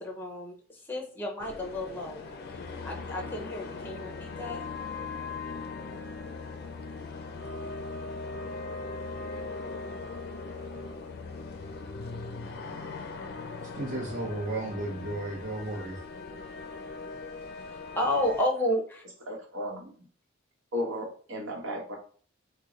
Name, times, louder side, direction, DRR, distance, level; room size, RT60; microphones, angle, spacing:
voice 1, 0.0-2.2 2.8-4.6 17.7-19.0, left 1 dB, 10° left, 0 dB, 0.7 m, -31 dB
sound 1, 1.4-18.4, left 3 dB, 55° left, 0.4 m, -39 dB
voice 2, 13.8-16.0, right 2 dB, 45° right, -2 dB, 0.9 m, -34 dB
voice 3, 19.3-19.9 20.7-22.0, left 1 dB, 85° right, 0 dB, 0.9 m, -34 dB
3.0 x 2.1 x 3.6 m, 0.43 s
head